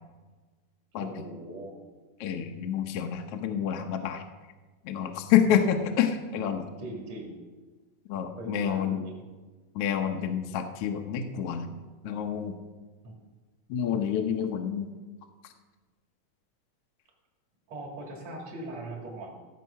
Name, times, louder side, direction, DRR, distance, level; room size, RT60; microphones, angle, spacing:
voice 1, 1.0-1.8 5.5-5.6 6.8-7.4 8.4-9.2 13.0-13.2 17.7-19.3, right 2 dB, 60° right, 0 dB, 3.4 m, -40 dB
voice 2, 2.2-4.2 4.8-6.6 8.1-9.0 9.7-11.7 12.0-12.6 13.7-14.9, left 8 dB, 65° left, 5 dB, 1.5 m, -28 dB
15.5 x 7.6 x 5.7 m, 1.3 s
omnidirectional pair, 3.5 m